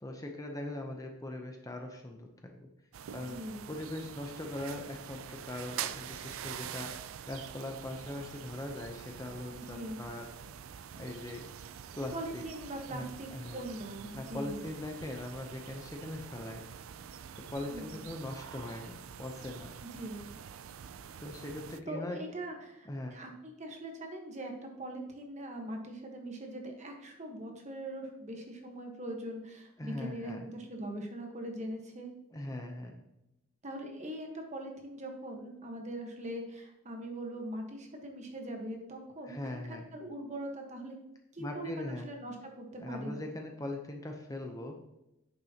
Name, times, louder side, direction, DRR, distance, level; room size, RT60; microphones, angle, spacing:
voice 1, 0.0-2.7 3.1-3.4 3.7-6.9 7.3-10.3 10.9-11.5 12.0-12.4 12.9-13.6 14.1-16.6 17.5-19.7 21.2-22.2 22.9-23.2 29.8-30.5 32.3-32.9 39.2-39.9 41.4-42.1 42.8-44.8, left 1 dB, 15° left, 3 dB, 0.7 m, -40 dB
sound 1, 2.9-21.8, right 9 dB, 80° right, 0.4 m, -46 dB
voice 2, 3.1-3.7 9.5-10.0 12.1-14.6 17.6-18.0 19.8-20.2 21.9-32.1 33.6-39.4 39.7-41.0 41.3-43.2, right 1 dB, 35° right, 3 dB, 1.2 m, -41 dB
9.0 x 6.7 x 2.9 m, 0.90 s
head